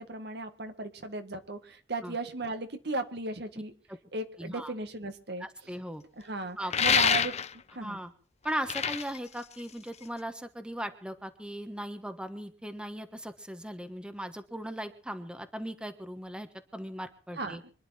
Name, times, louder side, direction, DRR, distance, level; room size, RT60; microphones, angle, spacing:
voice 1, 0.0-1.6 1.9-3.7 4.1-5.5 6.2-7.3 7.8-8.0 17.4-17.7, right 2 dB, 65° right, 7 dB, 1.9 m, -36 dB
voice 2, 4.4-4.7 5.4-6.0 6.6-7.0 7.8-8.1 8.4-17.6, equal, 5° right, 9 dB, 1.3 m, -38 dB
sound 1, 6.7-7.7 8.5-10.2, left 7 dB, 40° left, 0.7 m, -27 dB
25.5 x 10.5 x 4.3 m, 0.43 s
head